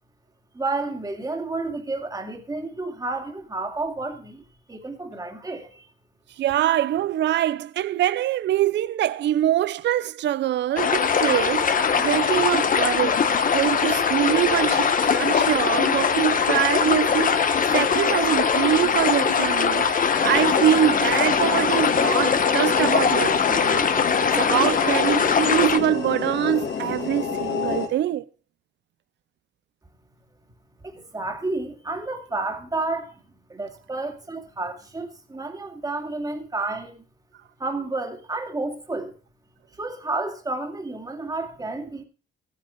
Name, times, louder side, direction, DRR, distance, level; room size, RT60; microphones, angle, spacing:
voice 1, 0.5-4.4 4.7-5.9 30.8-33.1 33.5-37.0 37.6-39.1 39.8-42.0, right 3 dB, 20° right, 2.3 m, -31 dB
voice 2, 6.4-13.2 13.5-17.4 17.7-19.9 20.2-23.9 24.3-28.2, right 12 dB, 65° right, 0.5 m, -24 dB
sound 1, 10.8-25.8, left 6 dB, 45° left, 1.1 m, -21 dB
sound 2, 20.1-27.9, left 5 dB, 60° left, 2.8 m, -29 dB
14.5 x 9.5 x 4.6 m
cardioid pair, 90°, 20 cm